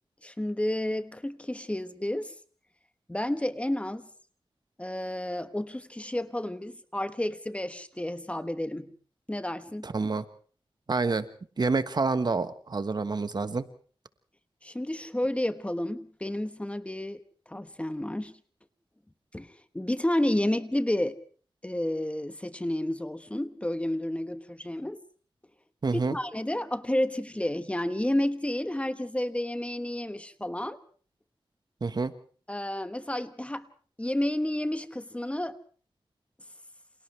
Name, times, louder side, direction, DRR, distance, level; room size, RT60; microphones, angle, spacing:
voice 1, 0.2-2.3 3.1-4.1 4.8-8.9 9.3-9.9 14.6-17.2 17.5-18.4 19.3-21.2 21.6-25.0 25.9-30.8 32.5-33.7 34.0-35.6, left 1 dB, 15° left, 11 dB, 1.2 m, -31 dB
voice 2, 9.8-10.2 10.9-11.3 11.6-13.6 25.8-26.2 31.8-32.1, right 4 dB, 50° right, 11 dB, 1.3 m, -28 dB
29.0 x 27.0 x 3.3 m, 0.43 s
wide cardioid pair, 90°, 9 cm